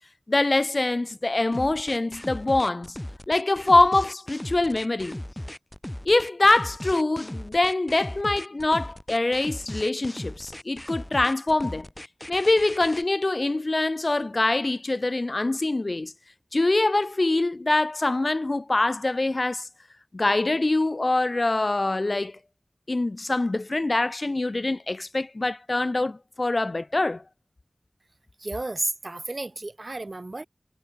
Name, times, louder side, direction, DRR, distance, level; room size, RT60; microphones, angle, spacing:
voice 1, 0.3-3.0 3.3-5.2 6.1-11.9 12.3-16.1 16.5-19.7 20.1-22.4 22.9-27.2, left 2 dB, 60° left, 0.4 m, -24 dB
sound 1, 1.5-13.0, left 1 dB, 15° left, 1.2 m, -37 dB
voice 2, 28.4-30.4, right 2 dB, 60° right, 1.4 m, -32 dB
wide cardioid pair, 50°, 0 cm